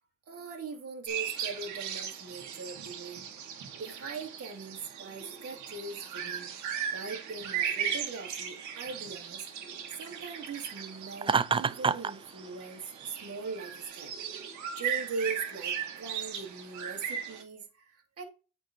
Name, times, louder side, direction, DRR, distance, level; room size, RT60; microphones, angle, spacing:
voice 1, 0.3-3.3 3.8-9.5 10.0-14.1 14.8-18.2, right 4 dB, 55° right, 2.8 m, -41 dB
sound 1, 1.1-17.4, right 8 dB, 80° right, 2.1 m, -38 dB
Laughter, 11.2-12.1, right 5 dB, 20° right, 0.4 m, -26 dB
8.9 x 4.6 x 4.6 m
cardioid pair, 90°, 29 cm